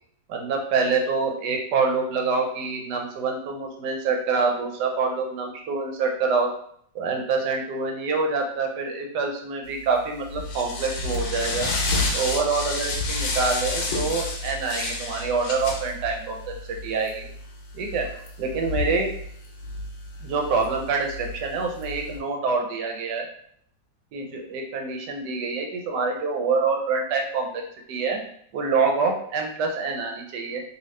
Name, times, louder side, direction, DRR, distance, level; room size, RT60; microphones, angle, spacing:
voice 1, 0.3-6.5 6.9-11.7 12.1-16.5 16.8-17.3 17.7-18.1 18.4-19.1 20.2-23.2 24.1-27.6 27.9-28.2 28.5-30.6, right 4 dB, 75° right, 2 dB, 1.1 m, -26 dB
sound 1, 9.8-22.2, left 2 dB, 70° left, 1.1 m, -31 dB
2.9 x 2.6 x 3.1 m, 0.64 s
omnidirectional pair, 1.9 m